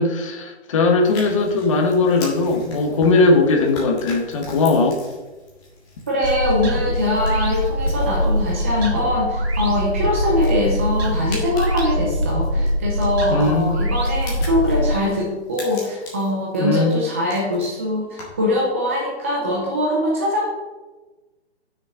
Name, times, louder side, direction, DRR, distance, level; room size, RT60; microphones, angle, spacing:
voice 1, 0.0-5.0 13.3-13.7 16.6-16.9, left 3 dB, 30° left, 2 dB, 1.4 m, -18 dB
sound 1, 1.0-18.5, left 2 dB, 10° left, 1.8 m, -42 dB
voice 2, 6.1-20.5, left 1 dB, 10° right, -3 dB, 0.6 m, -22 dB
sound 2, 6.2-15.0, equal, 65° right, 2.6 m, -23 dB
11.0 x 6.5 x 5.0 m, 1.2 s
hypercardioid pair, 170°, 34 cm